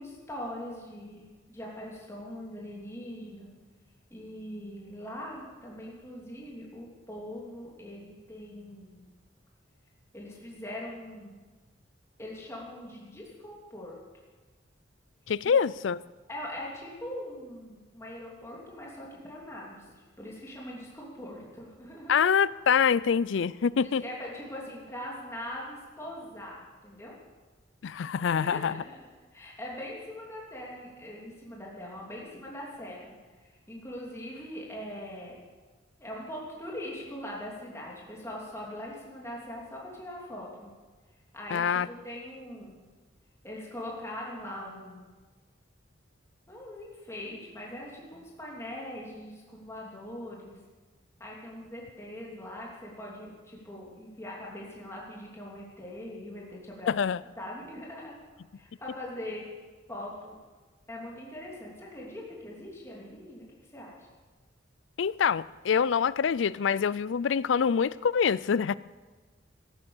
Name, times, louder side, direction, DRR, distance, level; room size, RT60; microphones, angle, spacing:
voice 1, 0.0-3.5 4.1-9.1 10.1-11.4 12.2-14.0 15.4-15.5 16.3-19.8 20.2-22.4 23.8-27.1 28.4-29.0 29.3-33.1 33.4-35.3 36.0-40.7 41.3-42.8 43.4-45.0 46.5-50.6 51.2-56.9 57.4-58.2 58.6-59.5 59.9-60.3 60.9-63.5 63.7-64.0, left 1 dB, 15° left, -3 dB, 3.0 m, -41 dB
voice 2, 15.3-16.0 22.1-24.0 27.8-28.8 41.5-41.9 56.9-57.2 65.0-68.8, left 6 dB, 75° left, 20 dB, 0.4 m, -25 dB
14.5 x 11.5 x 7.2 m, 1.3 s
head